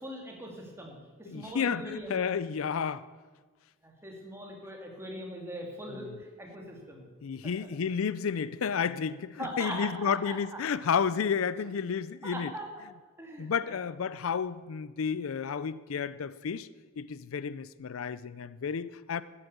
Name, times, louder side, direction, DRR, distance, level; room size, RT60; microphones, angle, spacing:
voice 1, 0.0-2.2 3.8-7.1 7.4-7.7 9.4-10.4 12.2-12.7 13.2-13.8, equal, 10° right, 0 dB, 2.6 m, -41 dB
voice 2, 1.3-3.0 6.0-6.1 7.2-12.5 13.4-16.7 17.0-19.2, left 6 dB, 90° left, 17 dB, 0.5 m, -31 dB
13.5 x 9.7 x 7.0 m, 1.4 s
head